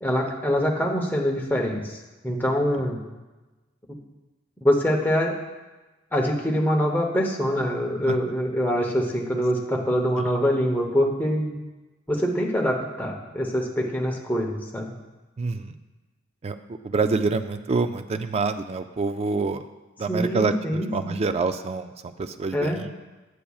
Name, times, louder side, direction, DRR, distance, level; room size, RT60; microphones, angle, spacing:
voice 1, 0.0-3.0 3.9-4.0 4.6-5.3 6.1-11.5 12.1-14.9 20.1-21.2 22.5-22.8, equal, 10° left, -1 dB, 0.8 m, -24 dB
voice 2, 15.4-15.8 16.4-19.7 20.0-22.9, right 4 dB, 30° right, 9 dB, 0.3 m, -27 dB
8.6 x 8.1 x 2.3 m, 1.1 s
head